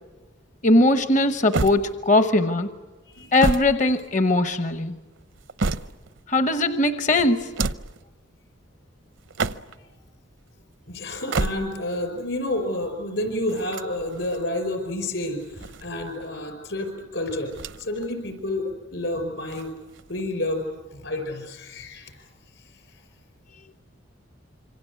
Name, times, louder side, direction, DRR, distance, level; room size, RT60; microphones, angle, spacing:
voice 1, 0.6-2.7 3.3-4.9 6.3-7.5, left 2 dB, 40° left, 10 dB, 0.9 m, -20 dB
sound 1, 1.5-2.3 3.1-4.5 5.2-6.2 7.4-8.0 9.2-9.9 11.1-12.0 13.5-14.4 15.3-16.3 17.5-18.1 18.4-18.5 19.5-20.2, right 3 dB, 70° right, 0.8 m, -30 dB
voice 2, 10.9-19.7 20.1-20.6 20.9-22.3, left 1 dB, 65° left, 7 dB, 5.1 m, -30 dB
27.0 x 24.5 x 8.3 m, 1.2 s
head